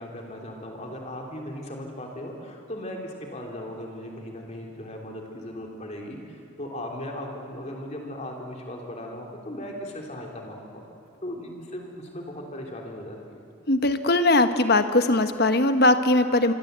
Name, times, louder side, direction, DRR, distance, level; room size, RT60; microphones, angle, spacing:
voice 1, 0.0-10.8 11.2-13.5, left 1 dB, 30° left, 1 dB, 3.2 m, -37 dB
voice 2, 13.7-16.5, left 2 dB, 45° left, 9 dB, 1.2 m, -20 dB
26.0 x 24.5 x 8.1 m, 2.7 s
head